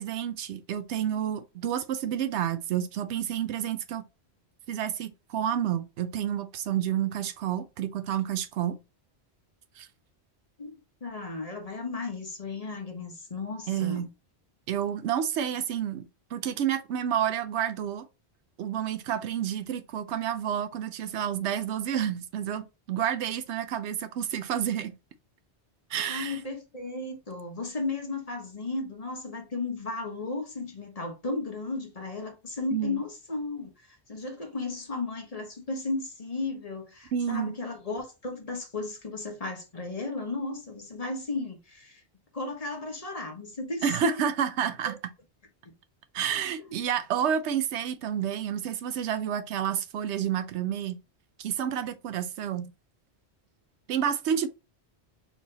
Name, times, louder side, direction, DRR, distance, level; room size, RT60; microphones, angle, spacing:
voice 1, 0.0-4.0 4.7-8.8 9.8-9.9 13.7-14.1 14.7-18.1 18.6-24.9 25.9-26.4 32.7-33.0 37.1-37.6 43.8-45.0 46.1-51.0 51.4-52.7 53.9-54.5, right 9 dB, 90° right, 0.9 m, -29 dB
voice 2, 10.6-14.1 26.1-42.0 42.3-44.2 44.9-45.0 45.6-45.7 46.6-46.8, left 3 dB, 35° left, 1.1 m, -35 dB
4.2 x 3.5 x 2.8 m
omnidirectional pair, 1.1 m